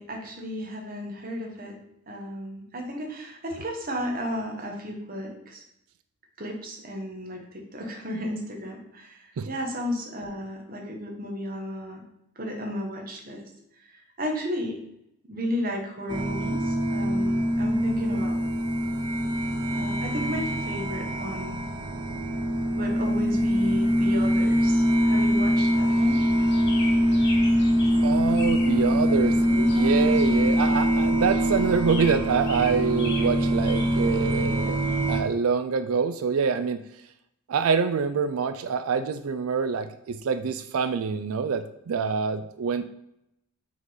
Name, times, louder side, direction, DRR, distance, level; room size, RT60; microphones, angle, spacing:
voice 1, 0.0-1.8 2.1-5.6 6.4-12.0 12.3-13.4 13.8-14.8 15.3-18.6 19.7-21.6 22.8-26.2 28.8-29.1 29.5-29.7, equal, 45° right, 1 dB, 1.4 m, -34 dB
sound 1, 16.1-35.2, equal, 20° right, 0.7 m, -23 dB
sound 2, 25.9-35.2, left 2 dB, 55° left, 1.4 m, -40 dB
voice 2, 28.0-29.3 29.8-34.8 35.1-36.8 37.5-42.8, right 5 dB, 90° right, 10 dB, 0.4 m, -25 dB
6.2 x 3.8 x 5.5 m, 0.80 s
head